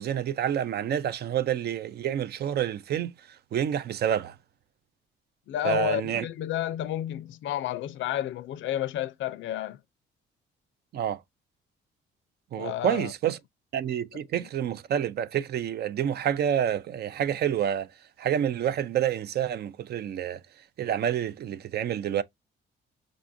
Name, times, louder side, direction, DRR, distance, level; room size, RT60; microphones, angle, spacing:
voice 1, 0.0-3.1 3.5-4.3 5.6-6.2 10.9-11.2 12.5-13.4 13.7-17.9 18.2-20.4 20.8-22.2, right 9 dB, 55° right, 0.4 m, -28 dB
voice 2, 5.5-9.8 12.6-13.1 14.3-14.5, left 12 dB, 75° left, 0.4 m, -31 dB
4.9 x 2.3 x 2.5 m
cardioid pair, 90°, 20 cm